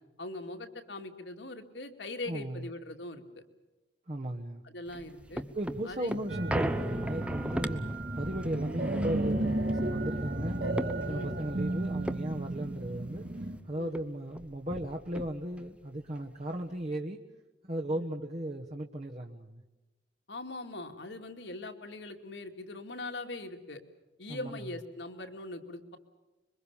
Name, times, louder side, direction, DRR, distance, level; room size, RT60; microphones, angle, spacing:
voice 1, 0.2-3.4 4.6-5.4 5.8-6.2 7.6-7.8 10.1-10.3 11.1-11.3 13.8-13.9 17.9-18.1 20.3-23.8 24.2-26.0, left 2 dB, 70° left, 5 dB, 2.4 m, -41 dB
voice 2, 2.3-2.7 4.1-4.6 5.5-7.8 8.1-10.6 11.0-17.2 17.6-19.6 24.3-24.6, right 1 dB, 35° right, 2 dB, 1.2 m, -36 dB
sound 1, 4.9-13.6 13.9-14.0 14.3-15.7 16.2-16.3, right 1 dB, 5° right, 0.8 m, -38 dB
sound 2, 6.3-13.6, right 1 dB, 60° right, 2.4 m, -34 dB
26.0 x 23.5 x 7.2 m, 1.1 s
head